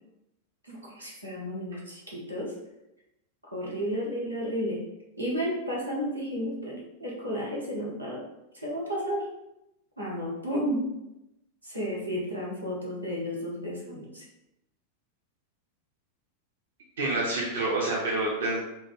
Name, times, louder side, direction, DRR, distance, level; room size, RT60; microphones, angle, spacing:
voice 1, 0.6-2.5 3.5-4.8 5.2-8.2 8.5-9.3 10.0-10.9 11.6-14.2, equal, 90° right, -5 dB, 0.8 m, -32 dB
voice 2, 17.0-18.6, right 2 dB, 65° right, -4 dB, 0.5 m, -27 dB
3.0 x 2.1 x 2.4 m, 0.89 s
figure-of-eight pair, 90°, 0 cm